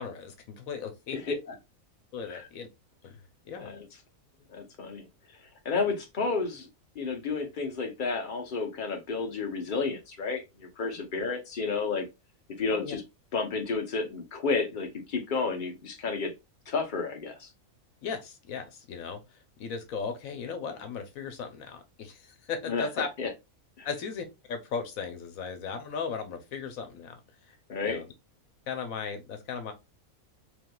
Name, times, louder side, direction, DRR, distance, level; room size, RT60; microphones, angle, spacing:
voice 1, 0.0-1.3 2.1-2.7 3.0-3.7 12.7-13.0 18.0-23.1 23.8-27.6 27.8-28.1 28.7-29.7, left 5 dB, 75° left, 1.1 m, -37 dB
voice 2, 4.5-5.1 5.4-6.7 7.0-12.1 12.6-13.0 13.3-16.3 16.7-17.5 22.7-23.3 23.8-23.9 27.7-28.0, left 4 dB, 45° left, 0.7 m, -31 dB
3.4 x 3.0 x 2.2 m
omnidirectional pair, 1.5 m